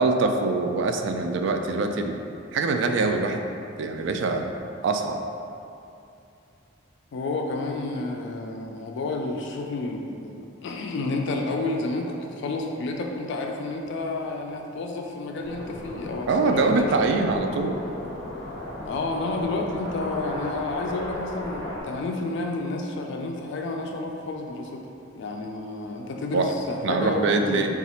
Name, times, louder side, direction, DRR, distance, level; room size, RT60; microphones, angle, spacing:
voice 1, 0.0-2.2 2.5-3.4 3.8-4.5 4.8-5.2 16.3-17.8 26.3-26.5 26.8-27.8, right 3 dB, 70° right, 5 dB, 0.3 m, -23 dB
voice 2, 7.1-17.1 18.8-24.8 25.2-27.6, left 2 dB, 65° left, 2 dB, 0.3 m, -30 dB
sound 1, 15.4-21.8, left 1 dB, 35° right, 1.3 m, -36 dB
4.0 x 2.4 x 4.2 m, 2.6 s
head